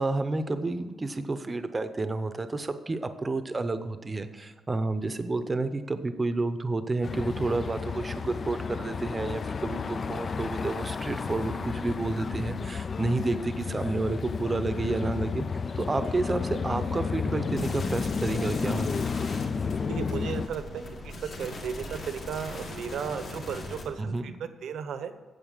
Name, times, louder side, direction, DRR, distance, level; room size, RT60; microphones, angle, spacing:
voice 1, 0.0-18.9 24.0-24.2, right 3 dB, 20° right, 10 dB, 0.7 m, -30 dB
sound 1, 7.0-20.5, left 5 dB, 35° left, 0.3 m, -32 dB
sound 2, 17.6-23.8, left 1 dB, 55° left, 2.0 m, -40 dB
voice 2, 19.7-25.1, right 7 dB, 80° right, 10 dB, 0.9 m, -35 dB
9.0 x 7.8 x 6.5 m, 1.3 s
wide cardioid pair, 145°, 0 cm